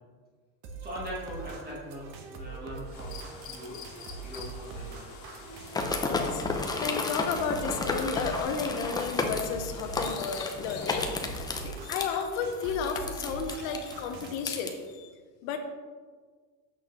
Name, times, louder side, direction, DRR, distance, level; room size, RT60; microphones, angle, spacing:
sound 1, 0.6-14.3, right 4 dB, 65° right, 1.1 m, -43 dB
voice 1, 0.8-5.1, equal, 25° right, -5 dB, 1.6 m, -41 dB
sound 2, 2.9-11.7, left 3 dB, 60° left, 1.6 m, -47 dB
sound 3, 5.7-14.7, left 3 dB, 10° left, 0.5 m, -33 dB
voice 2, 6.1-15.1 15.4-15.6, left 6 dB, 80° left, 5 dB, 1.0 m, -33 dB
7.7 x 6.3 x 3.1 m, 1.5 s
cardioid pair, 135°, 41 cm